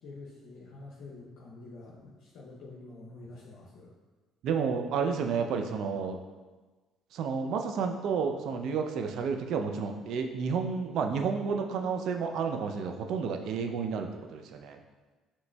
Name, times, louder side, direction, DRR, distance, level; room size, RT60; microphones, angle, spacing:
voice 1, 0.0-3.9, left 2 dB, 70° left, -5 dB, 0.6 m, -47 dB
voice 2, 4.4-6.2 7.1-14.8, right 5 dB, 70° right, 5 dB, 0.4 m, -31 dB
6.0 x 3.1 x 2.2 m, 1.3 s
supercardioid pair, 65°, 0 cm